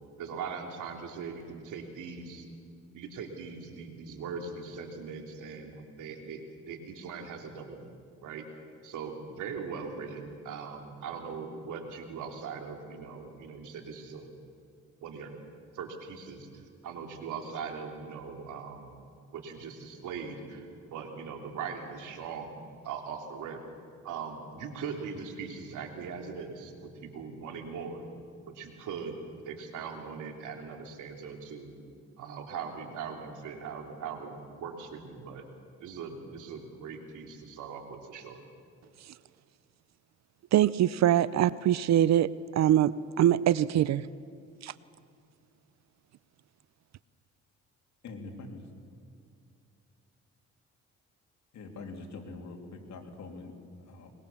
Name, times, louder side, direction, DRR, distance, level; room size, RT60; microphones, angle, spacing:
voice 1, 0.2-2.5 2.9-7.9 8.2-8.4 8.8-14.3 15.0-15.4 15.7-18.9 19.3-22.5 22.8-23.6 24.0-28.0 28.5-29.2 29.4-31.7 32.2-35.4 35.8-38.4, right 5 dB, 85° right, 3 dB, 3.1 m, -40 dB
voice 2, 40.5-44.1 44.6-44.7, right 11 dB, 65° right, 18 dB, 0.5 m, -24 dB
voice 3, 48.0-48.6 51.5-54.1, left 3 dB, 65° left, 2 dB, 3.3 m, -44 dB
22.5 x 22.0 x 7.1 m, 2.4 s
cardioid pair, 90°, 30 cm